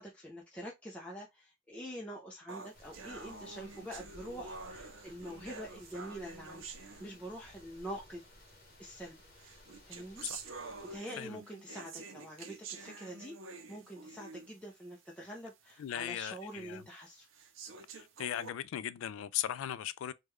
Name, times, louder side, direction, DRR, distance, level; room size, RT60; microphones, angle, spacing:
voice 1, 0.0-6.7 7.0-8.2 8.8-9.2 9.8-10.2 10.9-13.4 13.7-17.3, equal, 5° left, 0.5 m, -45 dB
sound 1, 2.5-7.6 8.5-8.6 9.4-14.6 15.1-15.2 15.7-15.8 16.5-16.6 17.3-18.5, right 4 dB, 65° right, 0.6 m, -48 dB
sound 2, 2.7-11.0, left 1 dB, 50° left, 0.9 m, -58 dB
voice 2, 15.8-16.8 17.9-20.1, left 11 dB, 75° left, 0.3 m, -38 dB
3.5 x 2.2 x 3.0 m
head